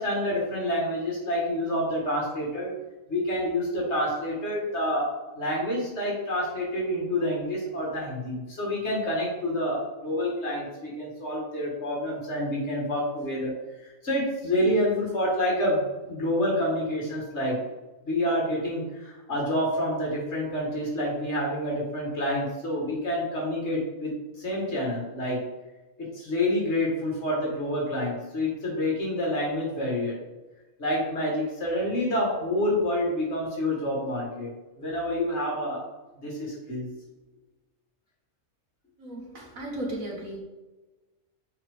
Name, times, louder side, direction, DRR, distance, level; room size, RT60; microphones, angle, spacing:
voice 1, 0.0-2.7 3.1-17.6 18.0-25.5 26.0-30.2 30.8-34.5 34.8-35.8 36.2-36.9, left 1 dB, 50° left, -3 dB, 2.0 m, -28 dB
voice 2, 39.0-40.4, right 1 dB, 70° right, -1 dB, 1.8 m, -35 dB
7.1 x 4.2 x 3.6 m, 1.1 s
omnidirectional pair, 1.5 m